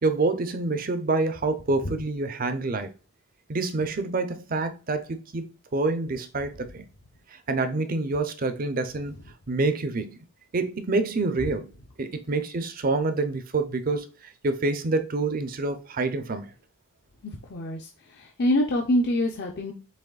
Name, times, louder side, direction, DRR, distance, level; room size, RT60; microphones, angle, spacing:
voice 1, 0.0-2.9 3.5-5.5 5.7-6.8 7.5-9.1 9.5-10.2 10.5-11.7 12.0-14.1 14.4-16.5, right 3 dB, 40° right, 0.6 m, -27 dB
voice 2, 17.2-19.7, left 1 dB, 50° left, 0.6 m, -26 dB
7.4 x 3.0 x 2.3 m
head